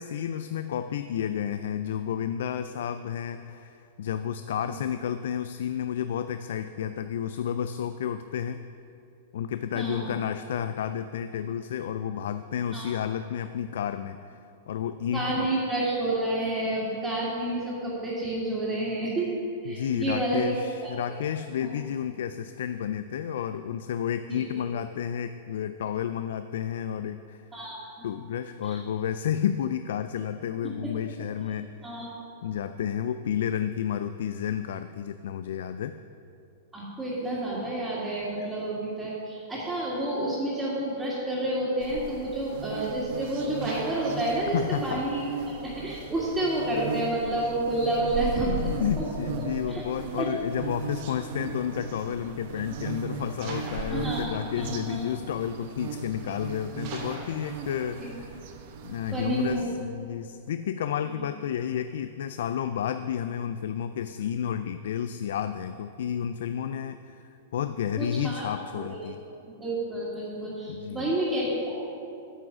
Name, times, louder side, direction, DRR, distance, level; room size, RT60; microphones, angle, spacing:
voice 1, 0.0-8.6 9.3-14.4 14.7-15.5 19.7-27.4 28.0-31.7 32.4-35.9 38.4-38.5 44.5-45.0 48.5-58.4 58.8-67.0 67.2-69.2 70.7-71.1, left 9 dB, 75° left, 10 dB, 0.3 m, -31 dB
voice 2, 9.7-10.1 12.7-12.9 15.1-19.4 19.6-20.5 20.8-20.9 21.6-21.7 24.3-24.7 27.5-28.1 28.6-28.8 30.8-30.9 31.8-32.1 36.7-44.6 44.8-49.1 49.7-49.8 50.2-50.3 53.9-55.0 58.0-58.1 59.1-59.7 61.0-61.2 67.9-68.5 68.7-69.1 69.6-71.8, right 1 dB, 15° right, -10 dB, 2.0 m, -30 dB
sound 1, 41.8-59.6, right 5 dB, 60° right, 0.9 m, -37 dB
sound 2, 43.6-46.9 47.2-47.3 47.8-47.9 48.2-48.3 49.2-49.6 50.8-51.1 51.9-52.0 53.4-56.2 56.5-59.6 60.0-60.1, right 2 dB, 40° right, 2.5 m, -46 dB
9.0 x 6.2 x 6.1 m, 2.6 s
hypercardioid pair, 140°, 0 cm